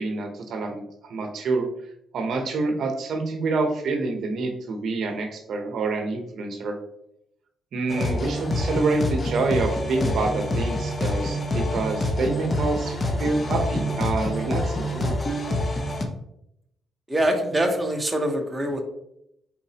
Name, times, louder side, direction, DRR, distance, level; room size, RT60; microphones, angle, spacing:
voice 1, 0.0-1.7 2.1-6.8 7.7-15.2, right 3 dB, 65° right, 4 dB, 0.7 m, -27 dB
sound 1, 7.9-16.1, left 1 dB, 30° left, 0.7 m, -26 dB
voice 2, 17.1-18.8, right 1 dB, 10° right, 2 dB, 0.8 m, -24 dB
4.4 x 4.1 x 2.8 m, 0.78 s
cardioid pair, 90°, 0 cm